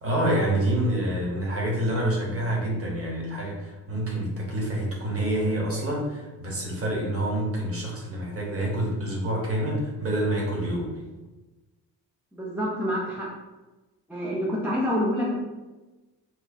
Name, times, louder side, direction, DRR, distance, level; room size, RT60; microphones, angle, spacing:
voice 1, 0.0-11.0, right 1 dB, 30° right, -2 dB, 1.0 m, -27 dB
voice 2, 12.3-13.3 14.1-15.3, equal, 5° right, -5 dB, 0.3 m, -27 dB
3.0 x 2.2 x 2.5 m, 1.1 s
figure-of-eight pair, 40°, 48 cm